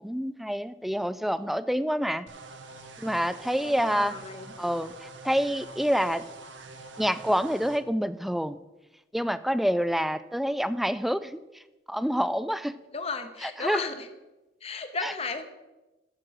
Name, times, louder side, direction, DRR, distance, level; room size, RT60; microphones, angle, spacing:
voice 1, 0.0-2.3 3.0-4.2 4.6-6.2 7.0-8.6 9.1-11.6 11.9-12.8 13.4-13.9 15.0-15.1, equal, ahead, 14 dB, 0.3 m, -27 dB
sound 1, 2.3-7.8, right 3 dB, 85° right, 1.2 m, -45 dB
voice 2, 3.6-4.5 12.9-14.1 14.6-15.4, left 4 dB, 35° left, 8 dB, 1.0 m, -34 dB
13.0 x 7.6 x 4.8 m, 1.1 s
head